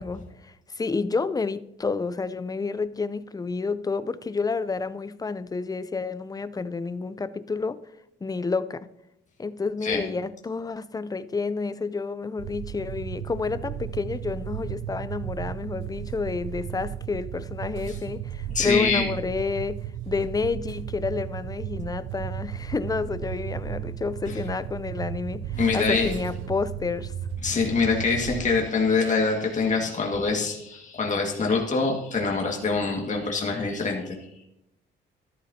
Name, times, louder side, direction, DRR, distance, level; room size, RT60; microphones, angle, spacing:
voice 1, 0.0-7.8 8.2-8.9 9.4-27.1, left 4 dB, 20° left, 0.5 m, -30 dB
sound 1, 12.4-28.7, right 10 dB, 85° right, 0.5 m, -35 dB
voice 2, 18.5-19.1 24.3-24.4 25.6-26.1 27.4-34.2, left 4 dB, 40° left, 1.9 m, -25 dB
13.0 x 11.5 x 2.8 m
cardioid pair, 90°, 20 cm